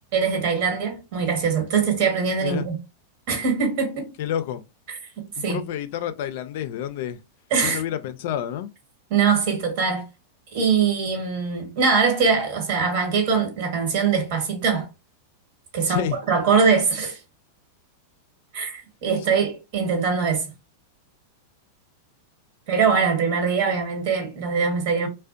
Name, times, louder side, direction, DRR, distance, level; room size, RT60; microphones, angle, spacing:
voice 1, 0.1-2.7 3.3-4.2 4.9-5.6 7.5-7.8 9.1-10.0 10.5-14.9 15.7-17.2 18.5-20.5 22.7-25.1, right 5 dB, 60° right, 1.2 m, -22 dB
voice 2, 4.2-4.6 5.4-7.2 7.6-8.7 15.8-16.2, left 10 dB, 65° left, 0.3 m, -29 dB
2.4 x 2.1 x 2.5 m
hypercardioid pair, 120°, 0 cm